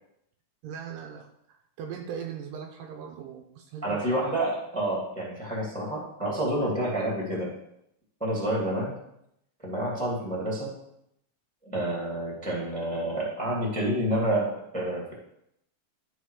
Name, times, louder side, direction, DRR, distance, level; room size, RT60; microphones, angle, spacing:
voice 1, 0.6-4.2, right 7 dB, 80° right, 3 dB, 2.2 m, -40 dB
voice 2, 3.8-7.5 8.2-8.9 9.6-10.7 11.6-15.1, right 1 dB, 5° left, -3 dB, 1.6 m, -29 dB
12.5 x 4.5 x 4.8 m, 0.78 s
omnidirectional pair, 4.3 m